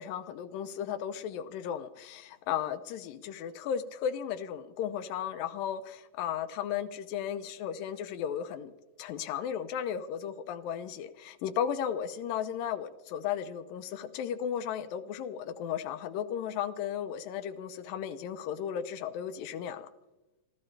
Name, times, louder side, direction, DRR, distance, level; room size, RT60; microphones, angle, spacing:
voice 1, 0.0-8.7 9.0-19.9, left 9 dB, 85° left, 11 dB, 2.5 m, -35 dB
26.0 x 14.0 x 3.3 m, 1.0 s
omnidirectional pair, 3.9 m